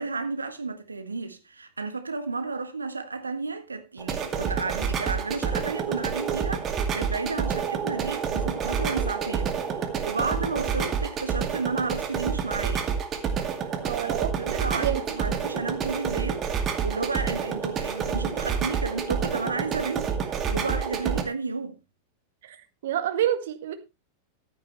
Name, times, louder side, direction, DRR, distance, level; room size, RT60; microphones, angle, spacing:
voice 1, 0.0-12.9 13.6-13.7 14.0-21.8, right 4 dB, 80° right, 1.4 m, -32 dB
sound 1, 4.0-21.2, right 6 dB, 30° right, 2.3 m, -29 dB
voice 2, 13.8-15.2 20.9-21.0 22.4-22.6 22.8-23.7, right 11 dB, 55° right, 1.9 m, -29 dB
15.0 x 10.5 x 3.2 m
figure-of-eight pair, 90°, 0 cm